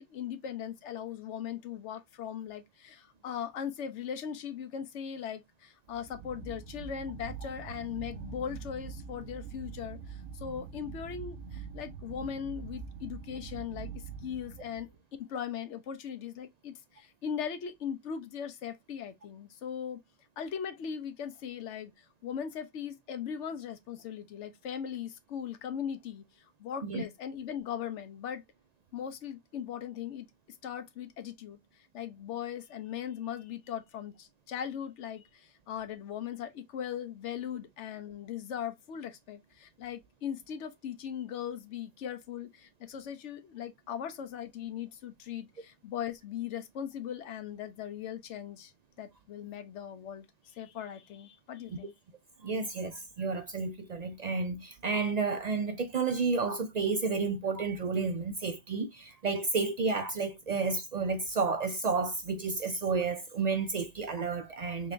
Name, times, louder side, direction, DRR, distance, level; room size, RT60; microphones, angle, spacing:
voice 1, 0.0-14.9 15.2-20.0 20.4-26.2 26.6-28.4 28.9-31.6 31.9-48.7 49.0-51.9, left 8 dB, 85° left, 1.0 m, -39 dB
sound 1, 5.9-15.0, right 6 dB, 85° right, 0.9 m, -44 dB
voice 2, 52.4-64.9, right 4 dB, 60° right, 0.4 m, -31 dB
3.7 x 3.3 x 2.5 m
omnidirectional pair, 1.2 m